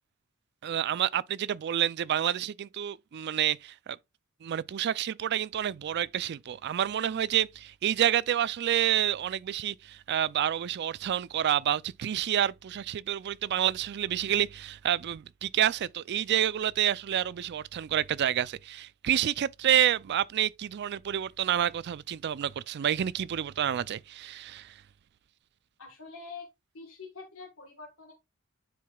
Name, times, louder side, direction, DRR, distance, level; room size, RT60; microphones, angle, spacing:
voice 1, 0.6-4.0 4.4-24.7, right 10 dB, 50° right, 0.3 m, -28 dB
voice 2, 25.8-26.5 26.7-28.1, left 4 dB, 65° left, 1.4 m, -45 dB
10.0 x 4.7 x 2.3 m
head